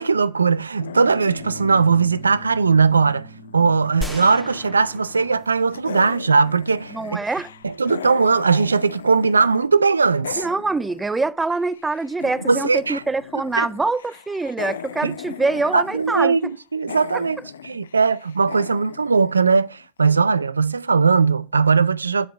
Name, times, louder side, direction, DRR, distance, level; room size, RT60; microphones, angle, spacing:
voice 1, 0.0-7.2 7.6-10.5 12.5-13.0 13.6-13.7 15.0-15.2 15.7-22.3, right 5 dB, 90° right, 0.4 m, -19 dB
sound 1, 0.8-3.9 4.2-5.4 5.7-9.7 9.9-20.0, left 8 dB, 80° left, 0.5 m, -38 dB
Bass guitar, 1.4-7.6, right 5 dB, 60° left, 2.7 m, -45 dB
sound 2, 4.0-6.3, left 1 dB, ahead, 1.9 m, -35 dB
voice 2, 6.9-7.5 10.4-16.5 17.1-17.2, right 3 dB, 15° right, 0.7 m, -24 dB
9.6 x 4.7 x 7.4 m
hypercardioid pair, 80°, 0 cm